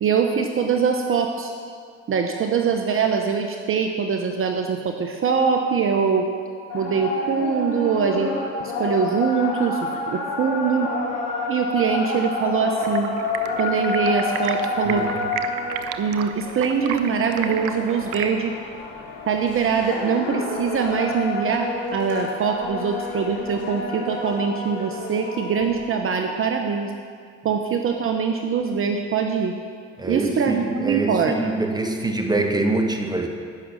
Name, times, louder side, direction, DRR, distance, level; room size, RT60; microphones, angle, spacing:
voice 1, 0.0-1.5 2.1-6.3 6.7-8.3 8.6-9.8 10.1-10.9 11.5-13.1 13.6-15.1 16.0-18.5 19.3-26.9 27.4-29.5 30.0-31.4, right 6 dB, 45° right, 4 dB, 0.9 m, -23 dB
sound 1, 6.7-25.8, left 3 dB, 85° left, 3.0 m, -29 dB
Stream, 12.8-18.3, right 9 dB, 80° right, 0.7 m, -33 dB
voice 2, 30.0-33.3, right 2 dB, 15° right, 4 dB, 1.5 m, -24 dB
14.5 x 6.2 x 6.2 m, 2.1 s
supercardioid pair, 75°, 31 cm